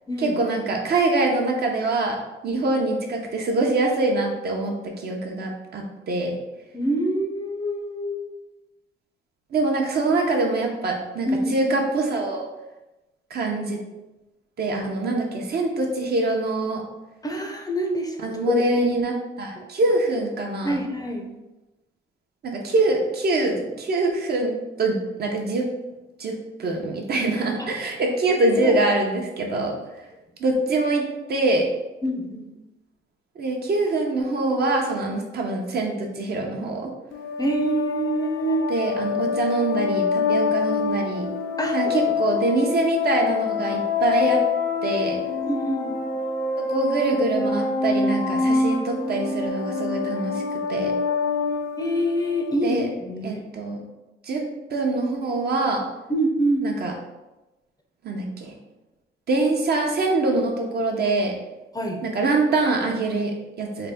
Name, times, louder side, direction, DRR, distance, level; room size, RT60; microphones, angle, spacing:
voice 1, 0.2-2.2 2.4-6.3 9.5-12.5 13.3-13.8 14.6-16.8 18.2-20.8 22.4-24.5 24.8-25.7 26.2-29.7 30.4-31.0 31.3-31.7 33.4-36.9 38.7-41.3 41.7-44.4 44.8-45.2 46.6-50.4 50.7-50.9 52.6-52.9 53.2-53.8 54.2-54.4 54.7-55.8 56.6-56.9 58.0-58.6 59.3-61.3 62.0-63.9, right 2 dB, 55° right, 1 dB, 0.8 m, -24 dB
voice 2, 6.7-8.3 11.3-11.5 17.2-18.2 18.5-18.6 18.9-19.0 19.6-19.7 20.6-21.3 27.6-27.7 28.6-28.7 32.0-32.4 37.4-38.7 41.6-42.0 45.4-46.0 51.8-53.4 56.1-56.7 61.7-62.0, right 1 dB, 20° left, 2 dB, 0.5 m, -25 dB
sound 1, 37.1-52.5, left 4 dB, 75° left, 0.6 m, -26 dB
3.8 x 2.2 x 3.5 m, 1.0 s
cardioid pair, 90°, 20 cm